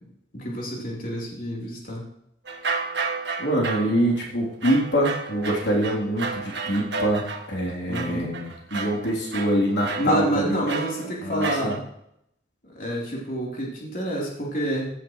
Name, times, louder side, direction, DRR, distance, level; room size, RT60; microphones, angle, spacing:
voice 1, 0.3-2.0 7.9-8.3 10.0-11.8 12.6-14.9, right 1 dB, 50° left, -3 dB, 3.6 m, -28 dB
sound 1, 2.5-7.6 7.9-11.8, right 4 dB, 75° right, 1.6 m, -32 dB
voice 2, 3.4-10.5 11.2-11.7, equal, 75° left, -3 dB, 3.3 m, -25 dB
16.0 x 10.5 x 3.2 m, 0.75 s
head